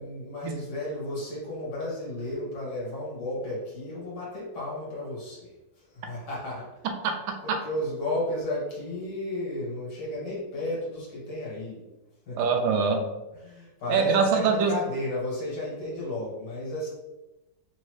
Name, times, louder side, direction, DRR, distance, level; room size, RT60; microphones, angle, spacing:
voice 1, 0.0-6.8 7.4-11.8 12.3-12.5 13.4-16.9, left 1 dB, 60° left, -6 dB, 2.1 m, -33 dB
voice 2, 7.0-7.6 12.4-13.1 13.9-14.7, right 5 dB, 85° right, 4 dB, 1.4 m, -24 dB
4.0 x 2.7 x 3.1 m, 1.0 s
omnidirectional pair, 2.3 m